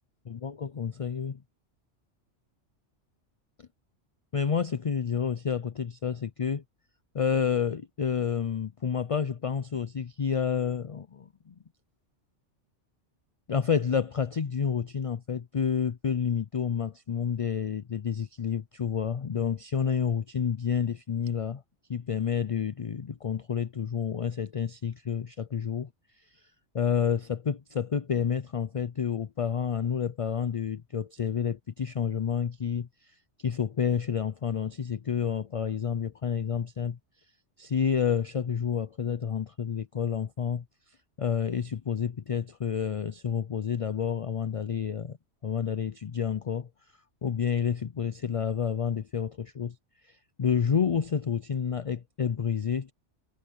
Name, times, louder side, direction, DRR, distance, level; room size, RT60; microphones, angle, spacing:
voice 1, 0.3-1.4 4.3-6.6 7.1-11.5 13.5-21.6 21.9-25.9 26.7-33.1 33.4-37.0 37.6-40.6 41.2-45.2 45.4-46.7 47.2-49.8 50.1-52.9, left 7 dB, 45° left, 0.4 m, -29 dB
omnidirectional pair, 1.2 m